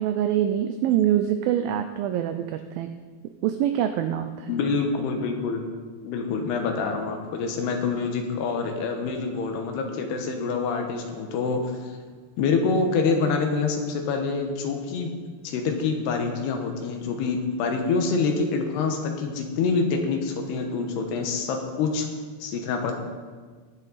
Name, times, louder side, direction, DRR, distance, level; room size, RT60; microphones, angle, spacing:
voice 1, 0.0-2.9 3.4-4.6, right 10 dB, 85° right, 8 dB, 2.1 m, -25 dB
voice 2, 4.5-5.6 6.0-12.0 12.4-15.1 15.4-22.1 22.4-23.0, left 4 dB, 80° left, 4 dB, 3.2 m, -26 dB
20.5 x 7.2 x 4.1 m, 1.5 s
omnidirectional pair, 4.8 m